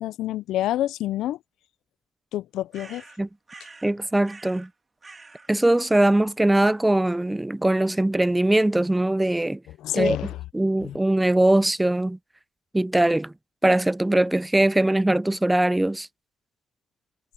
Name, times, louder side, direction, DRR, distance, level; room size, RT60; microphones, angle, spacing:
voice 1, 0.0-1.4 2.3-3.0 9.8-10.4 10.8-11.0, left 13 dB, 85° left, 0.4 m, -27 dB
sound 1, 2.7-3.9 4.2-4.7 5.0-5.5, right 3 dB, 25° right, 2.0 m, -46 dB
voice 2, 3.8-4.7 5.5-9.6 9.9-10.2 10.5-12.2 12.7-13.3 13.6-16.1, right 1 dB, 10° right, 0.3 m, -21 dB
cardioid pair, 90°, 0 cm